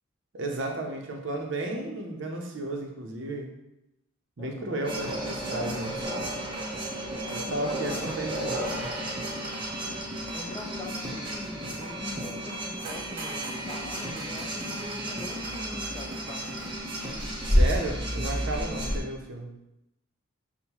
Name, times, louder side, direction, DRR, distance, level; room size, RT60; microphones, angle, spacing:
voice 1, 0.3-3.5 4.4-6.1 7.3-9.0 17.5-19.5, right 2 dB, 65° right, 2 dB, 0.6 m, -33 dB
voice 2, 4.4-4.8 7.4-8.0 9.8-10.0 10.3-16.7, left 2 dB, 20° left, 1 dB, 0.4 m, -43 dB
sound 1, 4.8-19.0, equal, 25° right, 0.7 m, -31 dB
5.5 x 2.1 x 3.0 m, 0.88 s
head